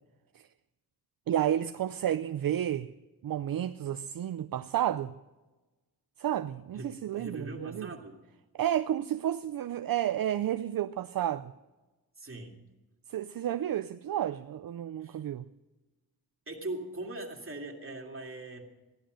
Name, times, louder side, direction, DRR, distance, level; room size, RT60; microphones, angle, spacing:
voice 1, 1.3-2.9 3.2-5.1 6.2-7.9 8.6-11.5 13.1-15.4, right 11 dB, 65° right, 0.5 m, -31 dB
voice 2, 6.7-8.2 12.2-12.6 15.0-15.2 16.5-18.6, right 2 dB, 35° right, 2.4 m, -40 dB
15.5 x 11.5 x 6.3 m
wide cardioid pair, 80°, 38 cm